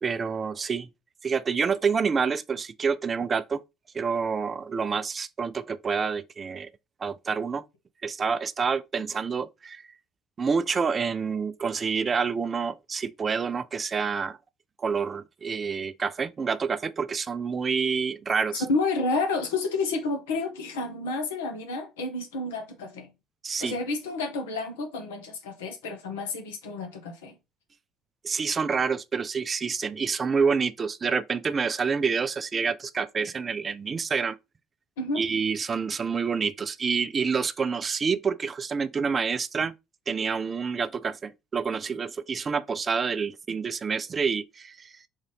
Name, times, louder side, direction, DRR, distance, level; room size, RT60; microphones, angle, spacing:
voice 1, 0.0-0.9 1.2-3.6 3.9-6.7 7.0-7.6 8.0-9.8 10.4-14.4 14.8-18.6 23.4-23.8 28.2-34.4 35.2-39.7 40.1-44.9, right 5 dB, 35° right, 0.3 m, -28 dB
voice 2, 18.7-23.1 23.6-27.4 35.0-35.2, left 3 dB, 80° left, 0.9 m, -30 dB
3.9 x 2.5 x 3.3 m
hypercardioid pair, 55°, 0 cm